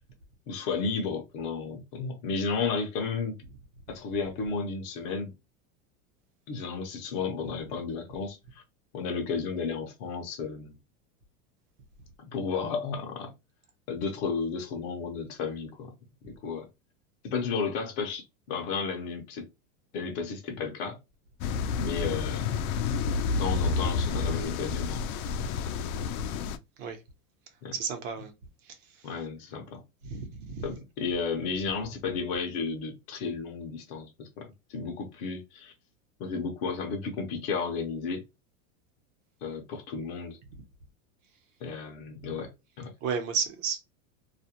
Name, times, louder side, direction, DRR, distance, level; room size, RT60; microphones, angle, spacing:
voice 1, 0.5-3.4 3.9-5.3 6.5-8.6 8.9-10.7 12.3-13.3 13.9-15.9 16.2-16.7 17.2-19.5 19.9-21.0 21.8-22.7 23.4-25.7 27.6-27.7 29.0-29.8 30.6-35.7 36.2-38.2 39.4-40.4 41.6-42.5 42.8-42.9, left 5 dB, 35° left, 0.6 m, -33 dB
sound 1, 21.4-26.6, left 5 dB, 80° left, 0.5 m, -29 dB
voice 2, 27.7-28.3 30.0-30.7 43.0-43.8, right 6 dB, 60° right, 0.9 m, -32 dB
2.4 x 2.1 x 2.8 m
supercardioid pair, 165°, 43 cm